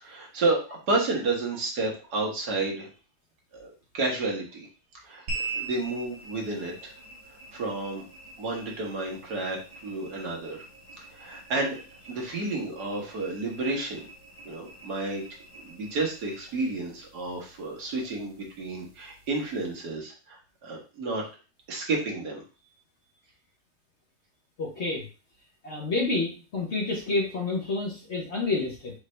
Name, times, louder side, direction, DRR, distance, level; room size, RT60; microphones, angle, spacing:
voice 1, 0.0-2.9 3.5-4.7 5.0-6.9 7.5-8.0 8.4-10.6 11.1-11.8 12.1-14.1 14.4-15.2 15.6-21.2 21.7-22.4, right 3 dB, 70° right, -1 dB, 1.7 m, -31 dB
sound 1, 5.3-19.9, right 3 dB, 85° right, 2.1 m, -43 dB
voice 2, 24.6-25.0 25.6-28.9, left 3 dB, 50° left, -1 dB, 1.0 m, -29 dB
4.9 x 2.6 x 3.2 m, 0.35 s
omnidirectional pair, 1.8 m